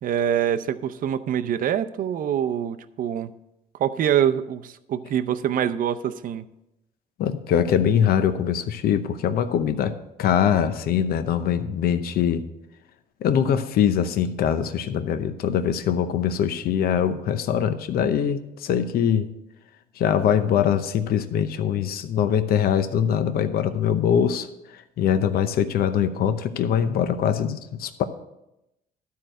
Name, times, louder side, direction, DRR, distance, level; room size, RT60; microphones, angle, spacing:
voice 1, 0.0-3.3 3.8-6.5, right 9 dB, 55° right, 10 dB, 0.6 m, -25 dB
voice 2, 7.2-12.4 13.2-19.3 20.0-24.5 24.7-28.0, left 8 dB, 65° left, 10 dB, 0.8 m, -23 dB
12.5 x 4.7 x 6.5 m, 0.89 s
cardioid pair, 110°, 17 cm